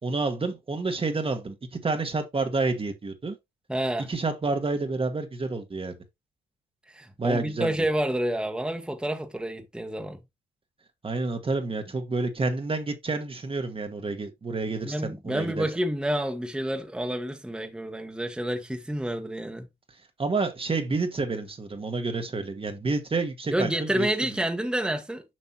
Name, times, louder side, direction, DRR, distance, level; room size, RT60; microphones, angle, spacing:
voice 1, 0.0-3.4 4.1-6.0 7.2-7.7 11.0-15.7 20.2-24.1, right 3 dB, 25° right, 1.3 m, -29 dB
voice 2, 3.7-4.1 6.9-10.2 14.8-19.7 23.5-25.2, right 1 dB, 5° right, 1.2 m, -29 dB
7.5 x 5.2 x 2.8 m
cardioid pair, 90°, 20 cm